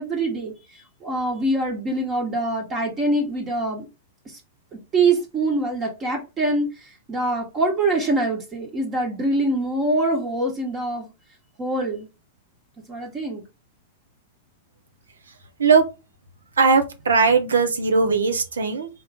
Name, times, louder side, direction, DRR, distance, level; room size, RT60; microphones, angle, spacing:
voice 1, 0.0-3.9 4.7-11.1 11.6-12.1 12.9-13.4, right 2 dB, 25° right, 1.4 m, -24 dB
voice 2, 16.6-18.9, right 4 dB, 75° right, 0.8 m, -19 dB
3.9 x 2.9 x 3.5 m
figure-of-eight pair, 105°, 0 cm